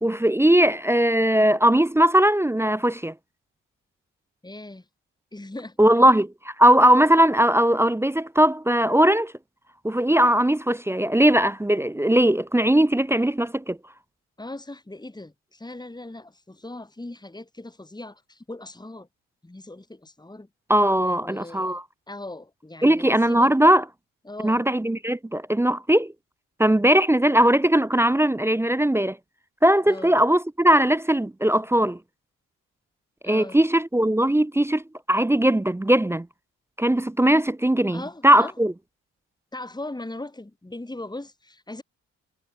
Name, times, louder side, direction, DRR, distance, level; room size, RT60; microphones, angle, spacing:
voice 1, 0.0-3.1 5.8-6.3 6.6-9.3 9.8-13.8 20.7-21.8 22.8-23.8 24.4-26.1 26.6-29.2 29.6-32.0 33.2-36.3 36.8-38.7, right 1 dB, 5° right, 0.6 m, -19 dB
voice 2, 4.4-4.8 5.3-6.1 14.4-19.1 19.4-20.5 21.0-21.8 22.1-23.5 24.3-24.6 29.8-30.1 33.2-33.6 37.9-38.5 39.5-41.8, left 2 dB, 10° left, 3.5 m, -39 dB
hypercardioid pair, 45°, 38 cm